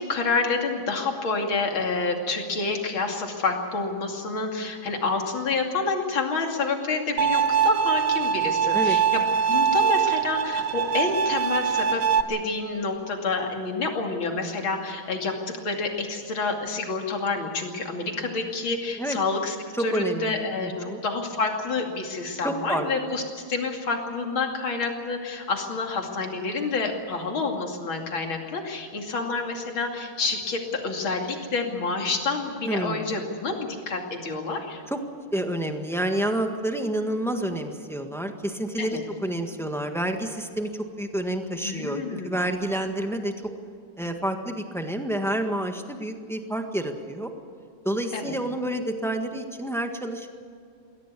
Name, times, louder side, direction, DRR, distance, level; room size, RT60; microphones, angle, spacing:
voice 1, 0.0-12.0 12.3-34.8 38.8-39.0 41.6-42.4 48.1-48.4, left 3 dB, 75° left, 2 dB, 3.3 m, -28 dB
Bowed string instrument, 7.2-12.2, right 7 dB, 90° right, 1.8 m, -23 dB
voice 2, 19.7-20.4 20.6-21.0 22.4-22.9 32.6-33.1 34.9-35.0 35.3-43.3 44.0-47.3 47.8-50.3, right 1 dB, ahead, 5 dB, 1.4 m, -29 dB
22.0 x 17.0 x 8.4 m, 2.4 s
omnidirectional pair, 2.2 m